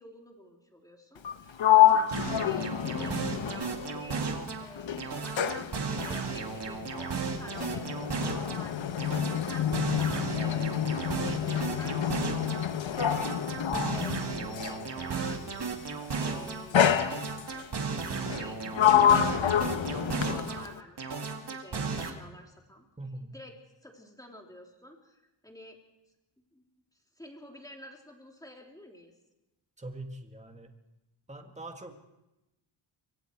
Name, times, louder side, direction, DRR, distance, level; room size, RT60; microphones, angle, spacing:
voice 1, 0.0-4.3 4.6-7.9 8.2-12.3 12.8-13.0 13.3-16.8 18.0-22.9 23.3-23.5 23.8-25.8 26.5-26.6 26.9-29.1, equal, 5° left, 1 dB, 3.3 m, -50 dB
Sliding door, 1.2-4.5 4.8-14.9 15.8-16.1 16.7-17.7 18.3-20.8, left 10 dB, 65° left, 1.1 m, -27 dB
sound 1, 2.1-4.7 5.0-8.7 9.0-12.6 13.0-16.6 17.0-20.7 21.0-22.1, right 5 dB, 55° right, 2.1 m, -35 dB
voice 2, 23.0-23.3 29.8-30.7 31.3-31.9, right 2 dB, 15° right, 4 dB, 1.8 m, -42 dB
26.0 x 24.0 x 4.6 m, 0.96 s
wide cardioid pair, 135°, 49 cm